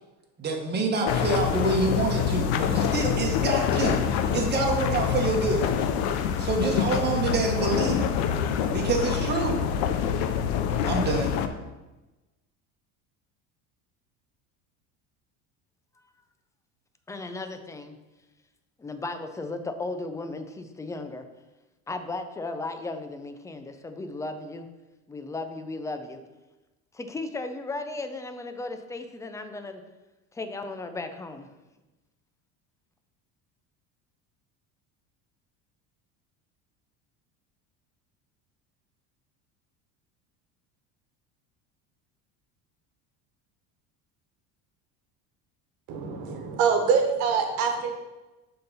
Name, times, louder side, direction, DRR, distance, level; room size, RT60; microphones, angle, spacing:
voice 1, 0.4-4.0 4.3-5.7 6.4-8.1 8.7-9.6 10.8-11.3, right 3 dB, 25° right, 0 dB, 1.4 m, -26 dB
sound 1, 1.0-11.5, left 8 dB, 85° left, 0.7 m, -26 dB
voice 2, 17.1-18.0 18.8-21.3 21.9-24.7 25.1-26.2 26.9-29.8 30.3-31.5, left 2 dB, 10° left, 7 dB, 0.4 m, -35 dB
voice 3, 45.9-47.9, right 6 dB, 70° right, 4 dB, 1.3 m, -24 dB
6.5 x 3.9 x 5.5 m, 1.1 s
cardioid pair, 125°, 37 cm